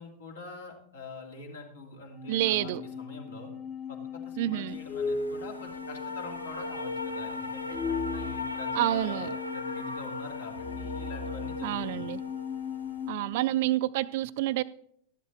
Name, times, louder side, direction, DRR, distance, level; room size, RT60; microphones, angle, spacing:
voice 1, 0.0-3.5 3.9-7.8 8.1-12.0, left 2 dB, 65° left, 2.4 m, -45 dB
sound 1, 2.1-13.3, left 5 dB, 35° left, 1.4 m, -37 dB
voice 2, 2.3-2.8 4.4-4.8 8.7-9.3 11.6-12.2 13.1-14.6, right 15 dB, 50° right, 0.4 m, -28 dB
sound 2, 4.7-13.1, left 2 dB, 85° left, 0.9 m, -39 dB
13.5 x 12.0 x 3.7 m
figure-of-eight pair, 90°, 0 cm